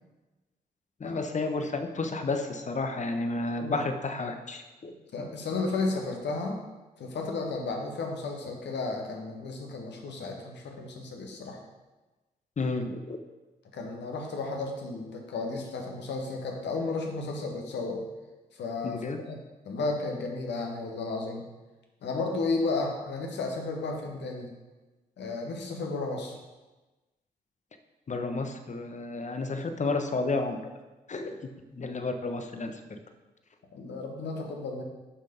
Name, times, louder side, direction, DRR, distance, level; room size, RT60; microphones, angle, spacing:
voice 1, 1.0-4.9 12.6-13.2 18.8-19.2 28.1-30.7 31.1-33.0, left 3 dB, 40° left, 7 dB, 1.0 m, -31 dB
voice 2, 5.1-6.6 7.0-11.6 13.7-18.0 18.5-19.0 19.3-19.4 19.6-21.5 22.0-24.5 25.2-26.3 33.7-34.8, left 3 dB, 70° left, 2 dB, 1.5 m, -33 dB
7.1 x 5.7 x 5.1 m, 1.2 s
hypercardioid pair, 40°, 19 cm